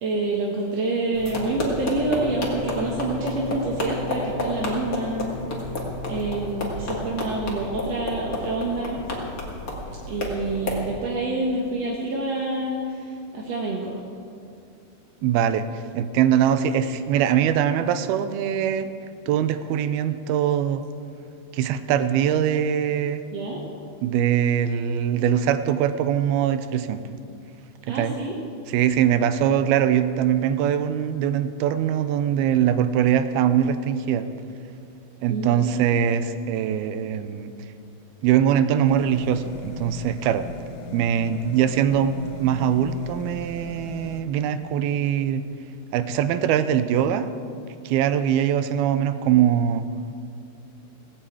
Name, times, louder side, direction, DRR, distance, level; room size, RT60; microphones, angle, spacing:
voice 1, 0.0-5.3 6.1-9.0 10.1-14.0 23.3-23.6 27.9-28.4 35.3-36.0, right 2 dB, 60° right, -2 dB, 1.8 m, -27 dB
sound 1, 1.1-10.9, left 1 dB, 30° left, 1.9 m, -30 dB
voice 2, 15.2-18.9 19.3-20.8 21.5-23.2 24.0-27.0 27.9-28.2 28.7-34.3 35.2-37.5 38.2-40.5 40.9-45.4 45.9-47.3 47.9-49.9, right 9 dB, 80° right, 11 dB, 2.4 m, -22 dB
sound 2, 38.9-44.2, left 2 dB, 75° left, 3.3 m, -38 dB
18.0 x 8.8 x 8.5 m, 2.4 s
omnidirectional pair, 4.7 m